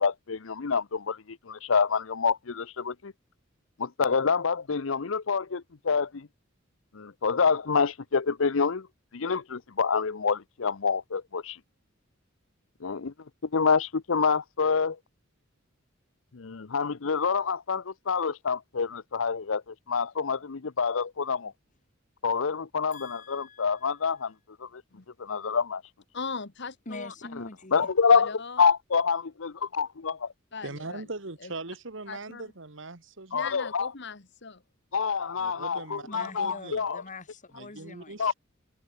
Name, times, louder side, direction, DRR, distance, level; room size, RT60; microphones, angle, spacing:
voice 1, 0.0-3.1 3.8-6.3 6.9-8.9 9.1-11.6 12.8-13.1 13.4-15.0 16.3-21.5 22.2-24.3 24.6-24.8 25.2-25.8 27.7-28.3 28.6-30.3 33.3-33.9 34.9-37.0 38.2-38.3, left 5 dB, 80° left, 0.8 m, -27 dB
voice 2, 22.9-24.0 26.9-27.9 36.0-38.2, left 3 dB, 40° left, 2.7 m, -44 dB
voice 3, 26.1-27.1 28.1-28.6 30.5-31.0 32.1-32.4 33.3-34.6, left 5 dB, 65° left, 1.8 m, -39 dB
voice 4, 30.6-33.5 35.4-36.9 37.5-38.3, right 3 dB, 70° right, 2.0 m, -40 dB
head